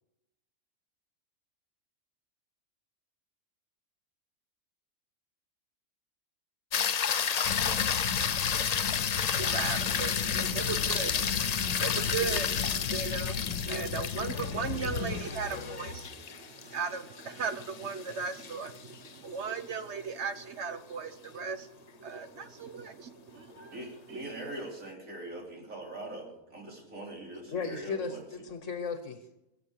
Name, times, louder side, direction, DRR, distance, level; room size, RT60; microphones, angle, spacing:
sound 1, 6.7-19.1 23.6-23.7, left 7 dB, 50° left, 0.5 m, -31 dB
sound 2, 7.4-15.2, left 8 dB, 85° left, 1.2 m, -36 dB
voice 1, 9.4-24.3, right 5 dB, 60° right, 10 dB, 1.2 m, -37 dB
sound 3, 10.3-19.4, equal, 5° left, 3.1 m, -58 dB
voice 2, 14.2-16.1 27.5-29.3, left 4 dB, 65° left, 8 dB, 1.4 m, -38 dB
voice 3, 23.7-28.2, right 1 dB, 80° right, -1 dB, 4.2 m, -42 dB
22.0 x 8.0 x 6.6 m, 0.90 s
omnidirectional pair, 1.4 m